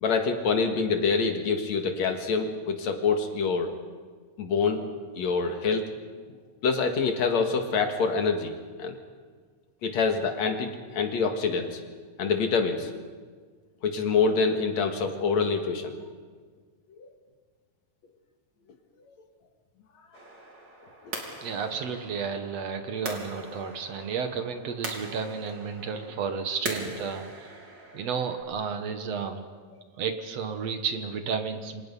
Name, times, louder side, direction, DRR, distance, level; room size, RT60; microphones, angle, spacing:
voice 1, 0.0-3.7 4.4-4.8 5.2-5.8 6.6-8.5 8.8-9.0 9.8-11.8 12.2-12.9 13.8-15.9 17.0-17.1, left 5 dB, 65° left, 5 dB, 3.0 m, -26 dB
sound 1, 20.1-28.4, right 2 dB, 35° right, 3.8 m, -41 dB
voice 2, 21.4-27.5 27.9-29.5 30.0-31.8, right 6 dB, 60° right, 7 dB, 2.3 m, -32 dB
28.5 x 26.0 x 5.5 m, 1.5 s
omnidirectional pair, 3.5 m